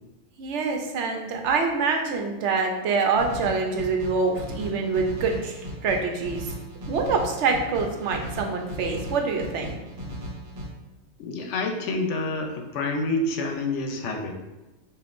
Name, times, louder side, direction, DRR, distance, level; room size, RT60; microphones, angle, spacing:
voice 1, 0.4-6.5 6.8-9.8, right 4 dB, 75° right, 3 dB, 0.9 m, -25 dB
sound 1, 3.2-10.7, equal, 55° right, 1.0 m, -36 dB
voice 2, 11.2-14.4, left 2 dB, 90° left, 4 dB, 0.9 m, -28 dB
5.1 x 2.5 x 2.5 m, 1.1 s
omnidirectional pair, 1.2 m